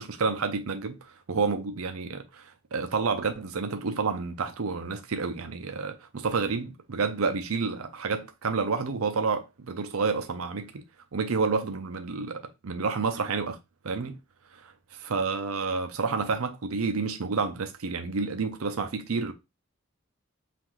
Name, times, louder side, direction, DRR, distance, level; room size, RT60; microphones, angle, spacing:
voice 1, 0.0-10.8 11.1-13.6 13.8-14.2 14.5-19.3, right 4 dB, 80° right, 0.6 m, -29 dB
5.7 x 2.5 x 3.1 m
head